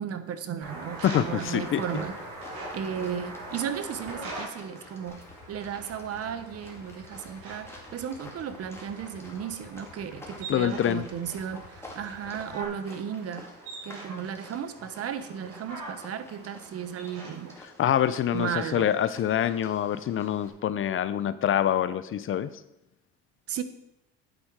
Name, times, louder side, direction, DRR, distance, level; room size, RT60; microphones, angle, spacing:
voice 1, 0.0-2.2 2.7-13.5 13.8-17.5 18.3-18.9 23.5-23.6, right 8 dB, 50° right, 12 dB, 1.0 m, -35 dB
sound 1, 0.6-17.6, right 2 dB, 80° right, 4.2 m, -43 dB
voice 2, 1.0-1.8 10.5-11.0 17.8-22.5, left 10 dB, 45° left, 14 dB, 0.6 m, -25 dB
sound 2, 1.6-20.5, left 1 dB, 10° left, 2.4 m, -50 dB
Idling, 5.1-12.6, left 5 dB, 75° left, 2.4 m, -53 dB
9.1 x 8.0 x 4.7 m, 0.83 s
supercardioid pair, 90°, 30 cm